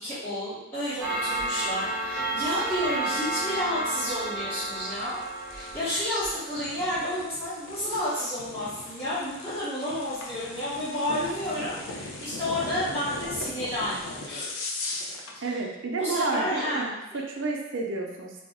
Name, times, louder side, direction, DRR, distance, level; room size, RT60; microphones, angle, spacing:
voice 1, 0.0-14.5 15.3-15.6 16.0-16.8 17.1-17.2, left 1 dB, 10° left, -16 dB, 0.8 m, -31 dB
Clock, 1.0-7.0, right 2 dB, 15° right, 0.5 m, -32 dB
sound 1, 4.4-15.4, left 2 dB, 90° left, 0.5 m, -39 dB
voice 2, 15.4-18.4, right 3 dB, 65° right, 0 dB, 0.5 m, -30 dB
2.4 x 2.0 x 3.6 m, 0.98 s
head